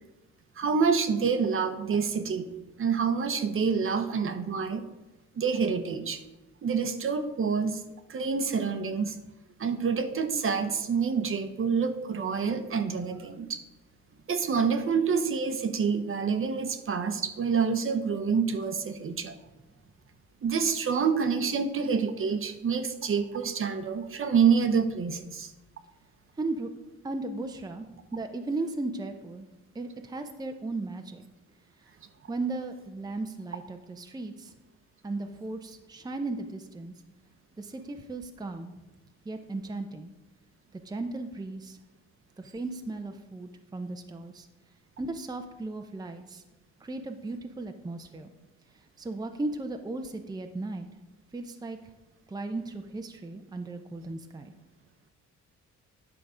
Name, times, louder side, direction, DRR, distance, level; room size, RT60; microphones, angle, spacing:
voice 1, 0.6-2.5 2.8-4.8 5.4-6.2 6.6-7.8 8.1-9.2 9.6-13.6 14.3-19.3 20.4-25.5, right 6 dB, 45° right, 9 dB, 0.9 m, -27 dB
voice 2, 26.4-26.7 27.0-29.5 29.7-31.2 32.3-34.5 35.0-36.9 37.6-38.7 39.2-40.1 40.7-41.8 42.4-44.5 45.0-46.4 46.8-48.3 49.0-50.9 51.3-51.8 52.3-54.5, right 2 dB, 15° right, 5 dB, 0.7 m, -36 dB
9.5 x 5.8 x 5.0 m, 1.0 s
cardioid pair, 90°, 30 cm